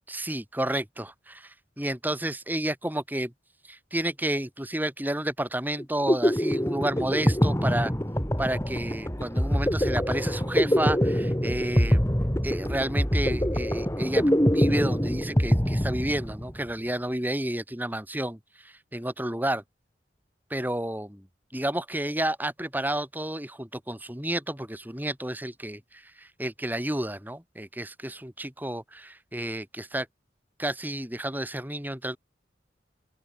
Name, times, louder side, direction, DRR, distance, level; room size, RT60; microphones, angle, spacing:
voice 1, 0.1-3.3 3.7-7.9 8.4-12.1 12.4-19.6 20.5-21.3 21.5-30.1 30.6-32.2, right 1 dB, 10° right, 2.9 m, -31 dB
sound 1, 5.8-16.6, equal, 15° left, 3.3 m, -24 dB
open air
head